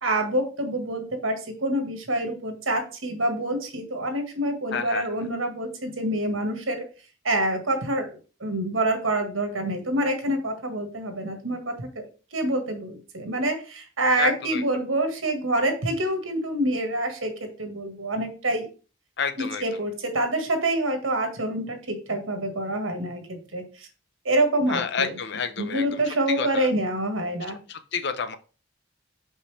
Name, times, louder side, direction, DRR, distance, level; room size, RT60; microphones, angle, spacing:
voice 1, 0.0-6.9 7.2-12.0 12.3-18.7 19.4-23.9 24.3-25.2 25.6-27.6, right 1 dB, 90° right, 5 dB, 1.7 m, -27 dB
voice 2, 4.7-5.0 14.2-14.6 19.2-19.6 24.7-26.0 26.3-26.7 27.7-28.4, left 6 dB, 60° left, 10 dB, 0.7 m, -29 dB
5.6 x 5.5 x 3.3 m, 0.36 s
head